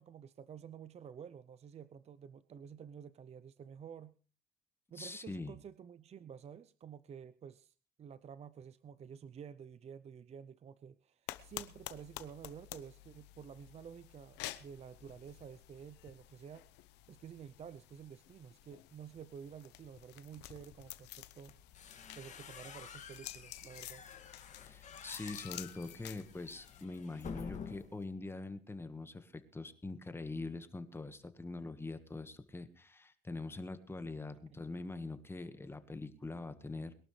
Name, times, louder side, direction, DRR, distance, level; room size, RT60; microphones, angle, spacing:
voice 1, 0.0-4.2 4.9-16.7 17.1-21.6 22.1-24.0 34.5-34.6, right 7 dB, 40° right, 15 dB, 0.6 m, -51 dB
voice 2, 5.0-5.5 24.6-36.9, left 3 dB, 15° left, 10 dB, 1.5 m, -44 dB
sound 1, 11.3-26.8, left 16 dB, 90° left, 0.9 m, -51 dB
sound 2, 21.5-28.0, left 6 dB, 45° left, 2.2 m, -50 dB
22.0 x 12.0 x 3.3 m, 0.36 s
cardioid pair, 110°, 17 cm